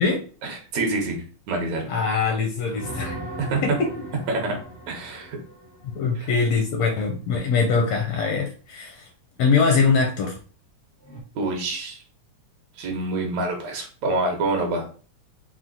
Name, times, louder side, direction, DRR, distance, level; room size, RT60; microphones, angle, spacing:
voice 1, 0.4-1.9 3.4-3.6 4.3-4.6 4.9-5.4 11.4-12.0 12.8-14.9, right 2 dB, 70° right, 2 dB, 2.3 m, -26 dB
voice 2, 1.9-3.2 3.6-3.9 5.9-9.1 9.4-10.4, left 5 dB, 75° left, 3 dB, 1.6 m, -22 dB
sound 1, 2.7-6.5 11.0-11.2, right 1 dB, 25° left, 0.5 m, -38 dB
5.9 x 2.1 x 3.8 m, 0.39 s
omnidirectional pair, 3.5 m